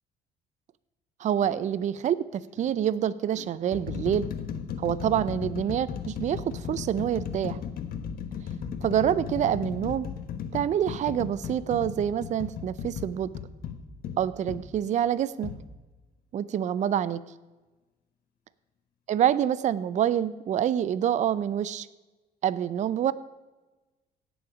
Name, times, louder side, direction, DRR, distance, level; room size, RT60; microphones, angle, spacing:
voice 1, 1.2-4.3 4.8-7.6 8.8-10.1 10.5-13.3 14.2-15.5 16.3-17.2 19.1-21.9 22.4-23.1, right 10 dB, 45° right, 17 dB, 0.5 m, -26 dB
sound 1, 1.4-1.7 2.6-2.7 3.4-14.7 15.4-15.6, left 7 dB, 60° left, 1.2 m, -36 dB
17.0 x 7.1 x 5.0 m, 1.2 s
cardioid pair, 110°, 17 cm